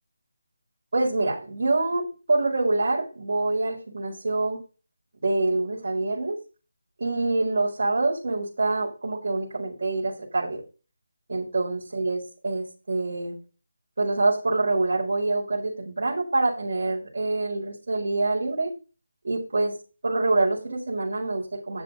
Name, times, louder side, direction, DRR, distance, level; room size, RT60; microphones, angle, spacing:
voice 1, 0.9-4.6 5.2-6.4 7.0-10.6 11.3-13.4 14.0-18.7 19.2-19.7 20.0-21.8, right 2 dB, 55° right, -2 dB, 4.9 m, -26 dB
10.0 x 7.6 x 4.2 m, 0.33 s
figure-of-eight pair, 155°, 0 cm